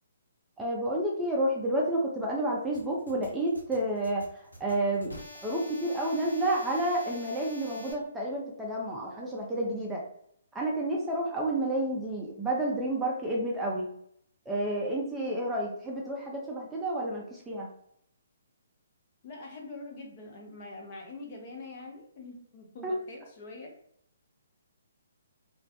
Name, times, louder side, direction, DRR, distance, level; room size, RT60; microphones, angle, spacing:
voice 1, 0.6-4.2 4.6-10.0 10.5-13.9 14.5-17.7 22.8-22.9, right 1 dB, 5° right, -3 dB, 0.4 m, -30 dB
sound 1, 2.7-7.9, left 1 dB, 85° left, 0.7 m, -47 dB
voice 2, 19.2-23.7, left 2 dB, 40° left, 0 dB, 0.6 m, -44 dB
2.3 x 2.0 x 2.7 m, 0.70 s
figure-of-eight pair, 135°, 0 cm